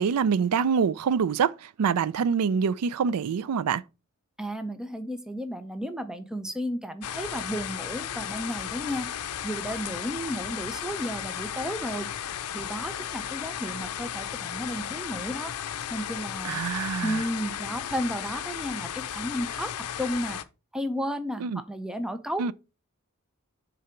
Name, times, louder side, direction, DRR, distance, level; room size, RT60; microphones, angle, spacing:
voice 1, 0.0-3.8 16.4-17.2 21.4-21.6 22.4-22.5, right 6 dB, 90° right, 0.4 m, -25 dB
voice 2, 4.4-9.1 9.4-12.1 12.5-15.5 15.9-16.6 17.0-20.4 20.7-22.5, equal, 5° right, 0.5 m, -33 dB
sound 1, 7.0-20.4, left 9 dB, 85° left, 0.5 m, -35 dB
6.6 x 3.9 x 4.4 m
head